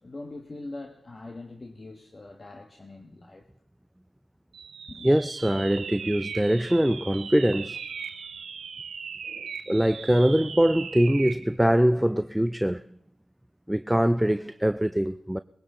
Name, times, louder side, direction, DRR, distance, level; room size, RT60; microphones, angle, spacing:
voice 1, 0.0-3.5 4.9-5.1, left 2 dB, 45° left, 1.5 m, -42 dB
sound 1, 4.5-11.5, right 6 dB, 85° right, 1.1 m, -39 dB
voice 2, 5.0-7.8 9.7-12.8 13.7-15.4, equal, 10° right, 0.5 m, -23 dB
20.5 x 15.5 x 3.8 m
cardioid pair, 40°, 0 cm